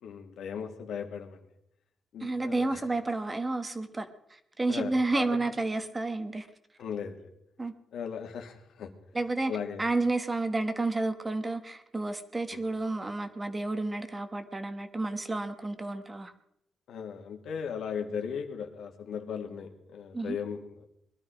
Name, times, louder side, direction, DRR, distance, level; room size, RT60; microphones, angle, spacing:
voice 1, 0.0-1.5 2.1-2.8 4.7-5.5 6.8-7.3 7.9-8.9 9.5-9.9 12.5-12.6 16.9-20.9, left 7 dB, 75° left, 2.1 m, -37 dB
voice 2, 2.2-6.5 7.6-7.7 9.1-9.5 9.8-16.3 20.1-20.4, right 2 dB, 15° right, 1.2 m, -31 dB
21.5 x 12.0 x 5.1 m
cardioid pair, 145°, 0 cm